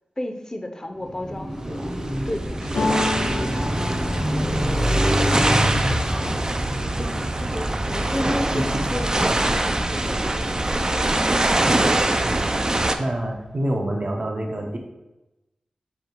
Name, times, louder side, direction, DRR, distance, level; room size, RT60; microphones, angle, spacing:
voice 1, 0.2-5.2 5.9-6.3 7.0-11.2, left 1 dB, 25° left, 5 dB, 0.6 m, -34 dB
Car passing by, 1.0-13.2, equal, 10° right, 0.8 m, -28 dB
sound 1, 1.6-12.9, right 2 dB, 30° right, 0.4 m, -24 dB
sound 2, 2.7-6.6 7.1-7.7 8.0-8.7, left 3 dB, 85° left, 0.4 m, -31 dB
voice 2, 8.5-9.3 12.1-12.7 13.0-14.8, right 1 dB, 50° right, 1 dB, 0.8 m, -28 dB
4.9 x 2.3 x 4.5 m, 1.0 s
cardioid pair, 50°, 2 cm